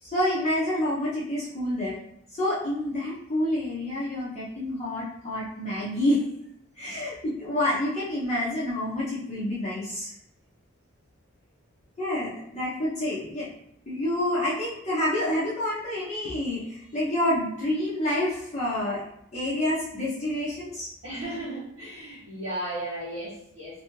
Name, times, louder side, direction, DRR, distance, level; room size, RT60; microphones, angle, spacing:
voice 1, 0.0-2.0 2.3-6.2 6.8-10.1 12.0-13.5 13.9-19.0 19.3-20.9, left 1 dB, 30° left, -8 dB, 0.7 m, -28 dB
voice 2, 21.0-23.8, right 1 dB, 85° right, -10 dB, 1.1 m, -35 dB
2.6 x 2.5 x 2.9 m, 0.76 s
head